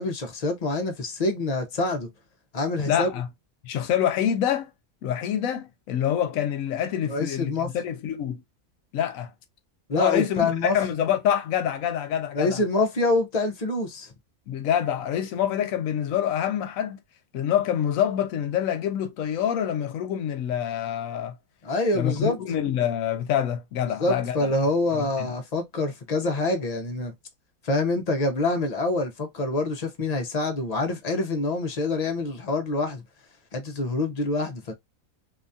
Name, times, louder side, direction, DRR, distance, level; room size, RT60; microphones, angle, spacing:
voice 1, 0.0-2.1 2.5-3.1 7.1-7.7 9.9-10.8 12.3-14.1 21.6-22.4 24.0-27.1 27.6-33.0 33.5-34.7, left 2 dB, 45° left, 0.5 m, -26 dB
voice 2, 2.9-3.3 3.6-4.7 5.0-8.4 8.9-9.3 10.0-12.6 14.5-17.0 17.3-21.4 21.9-24.4 24.9-25.3, left 10 dB, 80° left, 1.0 m, -26 dB
2.7 x 2.3 x 2.5 m
omnidirectional pair, 1.4 m